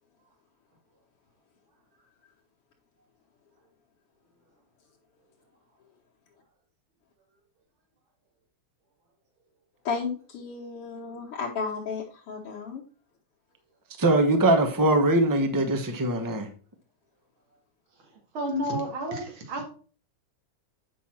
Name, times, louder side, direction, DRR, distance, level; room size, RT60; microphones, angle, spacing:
voice 1, 9.8-12.8, left 5 dB, 85° left, 2.2 m, -33 dB
voice 2, 14.0-16.5, right 1 dB, 15° right, 0.6 m, -22 dB
voice 3, 18.0-19.6, equal, 65° right, 2.8 m, -31 dB
8.3 x 5.6 x 4.3 m
omnidirectional pair, 2.4 m